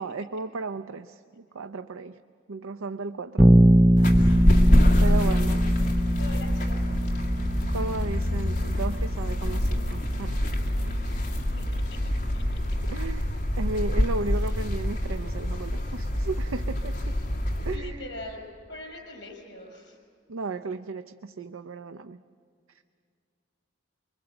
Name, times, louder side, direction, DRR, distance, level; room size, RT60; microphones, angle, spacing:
voice 1, 0.0-2.2 2.5-3.5 5.0-5.6 7.7-10.9 12.9-13.2 13.6-17.2 17.7-18.0 20.3-22.2, right 3 dB, 90° right, 10 dB, 0.5 m, -34 dB
Bass guitar, 3.4-13.2, equal, 10° right, 0.5 m, -24 dB
sound 1, 4.0-17.8, left 1 dB, 40° left, 2.2 m, -26 dB
voice 2, 5.1-5.6 6.2-7.1 11.0-12.4 14.4-14.5 17.7-20.0, left 2 dB, 55° left, 2 dB, 5.9 m, -43 dB
24.5 x 23.0 x 7.9 m, 2.3 s
head